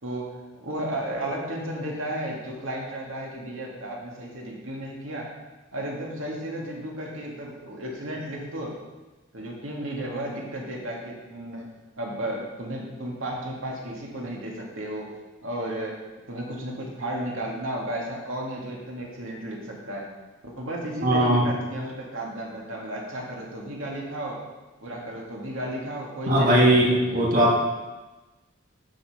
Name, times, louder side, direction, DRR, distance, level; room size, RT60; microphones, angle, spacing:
voice 1, 0.0-5.3 5.7-8.7 9.3-11.7 11.9-15.1 15.4-16.0 16.3-20.1 20.4-24.4 24.8-27.5, right 1 dB, 85° right, -2 dB, 2.2 m, -34 dB
voice 2, 21.0-21.5 26.3-26.9 27.1-27.6, right 1 dB, 40° right, -3 dB, 1.4 m, -19 dB
10.0 x 6.6 x 5.0 m, 1.2 s
head